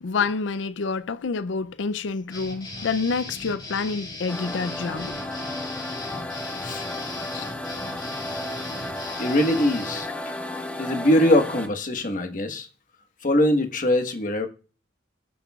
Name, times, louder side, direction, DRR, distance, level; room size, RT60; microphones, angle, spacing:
voice 1, 0.0-5.2 7.3-7.6, left 4 dB, 70° left, 0.5 m, -28 dB
sound 1, 2.3-10.0, left 2 dB, 25° left, 3.4 m, -38 dB
sound 2, 4.3-11.7, left 1 dB, 10° left, 1.3 m, -33 dB
voice 2, 9.2-10.1 10.8-12.7 13.2-14.5, left 1 dB, 45° left, 1.3 m, -22 dB
21.5 x 8.5 x 2.3 m
head